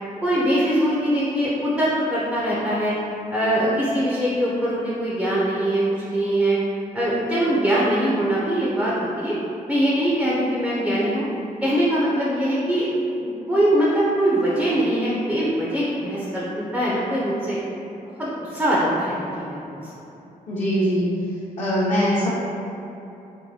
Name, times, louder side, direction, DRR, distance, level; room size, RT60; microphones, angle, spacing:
voice 1, 0.2-2.9 3.3-6.6 6.9-9.3 9.7-11.2 11.6-12.9 13.2-17.6 18.2-19.8, right 1 dB, 5° right, -7 dB, 0.5 m, -22 dB
voice 2, 20.5-21.1 21.6-22.3, equal, 50° left, -10 dB, 0.8 m, -21 dB
4.5 x 2.1 x 2.7 m, 2.9 s
cardioid pair, 110°, 15 cm